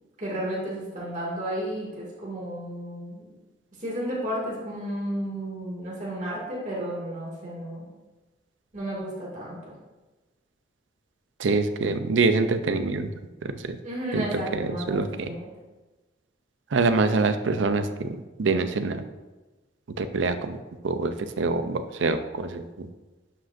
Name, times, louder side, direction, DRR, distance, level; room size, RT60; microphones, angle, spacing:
voice 1, 0.2-3.3 3.8-7.9 8.7-9.7 13.8-15.4, right 1 dB, 40° right, -5 dB, 2.2 m, -32 dB
voice 2, 11.4-13.1 13.4-13.8 14.1-15.3 16.7-19.0 20.0-20.6 20.8-22.9, right 3 dB, 90° right, 10 dB, 0.5 m, -25 dB
11.5 x 5.0 x 2.6 m, 1.2 s
head